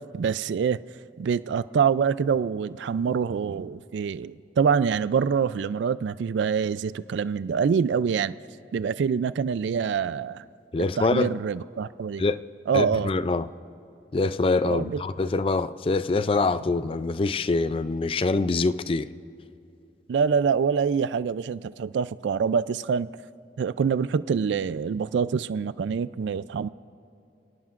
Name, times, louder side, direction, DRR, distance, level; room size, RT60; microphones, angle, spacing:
voice 1, 0.1-0.8 1.2-8.3 8.7-10.4 11.0-12.2 12.7-13.1 14.7-15.0 20.1-23.1 23.6-26.7, right 6 dB, 75° right, 0.3 m, -25 dB
voice 2, 10.7-11.4 12.2-12.4 12.7-13.5 14.1-19.1, left 3 dB, 30° left, 0.4 m, -25 dB
27.5 x 18.0 x 2.5 m
head